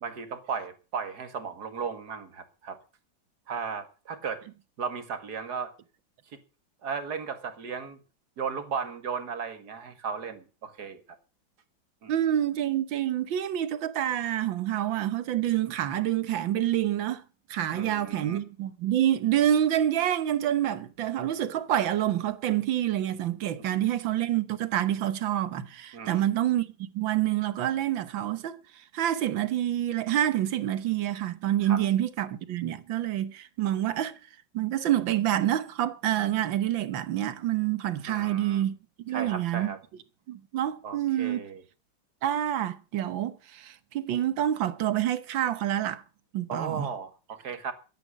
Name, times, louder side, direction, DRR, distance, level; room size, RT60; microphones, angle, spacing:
voice 1, 0.0-2.8 3.5-4.4 4.8-5.7 6.8-8.0 8.4-11.0 12.0-12.1 17.7-18.4 23.6-23.7 25.9-26.3 31.6-31.8 38.1-38.6 39.1-39.8 40.8-41.6 46.5-47.7, right 6 dB, 50° right, 2.3 m, -35 dB
voice 2, 12.1-17.2 17.5-26.7 26.9-28.6 28.9-34.1 34.5-38.7 39.0-39.7 40.3-41.4 42.2-46.0 46.3-46.9, right 12 dB, 70° right, 1.8 m, -27 dB
14.5 x 10.5 x 6.3 m
omnidirectional pair, 2.3 m